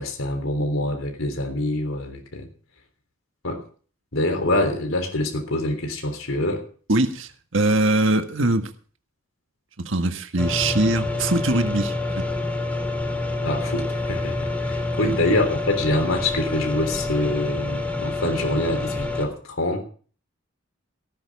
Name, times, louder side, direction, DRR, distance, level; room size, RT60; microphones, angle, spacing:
voice 1, 0.0-2.5 3.4-3.6 4.1-6.6 13.4-19.8, left 1 dB, 85° left, 5 dB, 3.5 m, -25 dB
voice 2, 6.9-8.7 9.8-12.2, right 2 dB, 65° right, 6 dB, 1.7 m, -22 dB
sound 1, 10.4-19.3, left 2 dB, 5° left, 3.1 m, -27 dB
18.0 x 13.5 x 3.6 m, 0.42 s
head